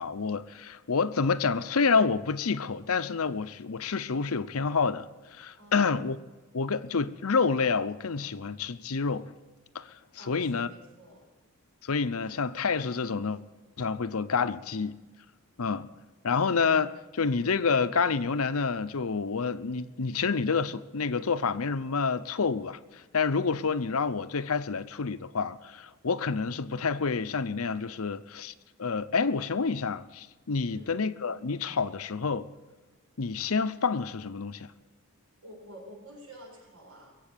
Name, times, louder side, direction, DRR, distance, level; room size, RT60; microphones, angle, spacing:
voice 1, 0.0-5.1 5.3-6.2 6.5-9.3 9.7-10.7 11.8-13.4 13.8-15.0 15.6-15.9 16.2-28.5 28.8-32.5 33.2-34.7, left 5 dB, 85° left, 0.7 m, -28 dB
voice 2, 5.5-6.0 10.2-11.3 30.7-30.9 35.4-37.1, equal, 80° right, 6.8 m, -49 dB
22.5 x 8.5 x 6.8 m
head